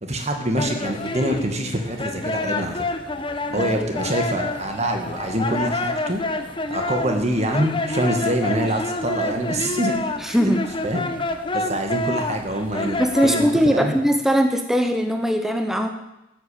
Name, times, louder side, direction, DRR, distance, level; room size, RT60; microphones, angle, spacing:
voice 1, 0.0-2.8 3.5-6.2 6.7-9.9 10.3-10.5 10.8-11.1 11.5-14.0, right 1 dB, 35° right, 4 dB, 2.0 m, -25 dB
sound 1, 0.6-13.5, left 2 dB, 25° left, 0.9 m, -28 dB
voice 2, 3.6-3.9 10.2-10.6 13.0-15.9, equal, ahead, 5 dB, 1.0 m, -20 dB
13.0 x 8.3 x 8.6 m, 0.93 s
head